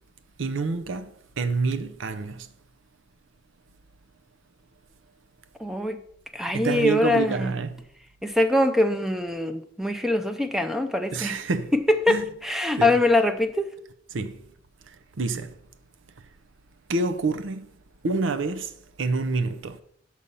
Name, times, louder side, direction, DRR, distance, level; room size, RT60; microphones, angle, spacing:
voice 1, 0.4-2.5 6.5-7.8 11.1-11.7 12.1-12.2 12.8-12.9 14.1-14.4 14.9-15.5 16.9-17.7 18.0-19.8, right 3 dB, 85° right, 0.6 m, -28 dB
voice 2, 5.6-6.0 6.3-7.5 8.2-11.4 11.7-13.7, left 2 dB, ahead, 0.5 m, -23 dB
6.8 x 6.3 x 5.4 m
head